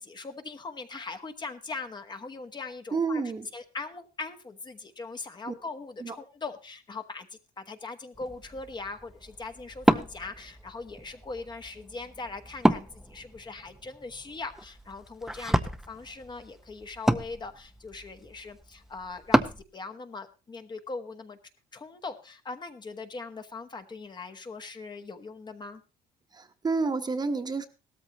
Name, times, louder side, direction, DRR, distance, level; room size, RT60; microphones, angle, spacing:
voice 1, 0.0-3.2 3.5-7.3 7.6-21.4 21.7-25.8, left 3 dB, 25° left, 7 dB, 1.2 m, -40 dB
voice 2, 2.9-3.5 5.5-5.6 6.0-6.2 26.3-27.7, right 4 dB, 25° right, 8 dB, 1.1 m, -29 dB
Wood, 8.1-19.6, right 1 dB, ahead, 0.6 m, -31 dB
17.0 x 13.5 x 3.0 m, 0.31 s
cardioid pair, 140°, 17 cm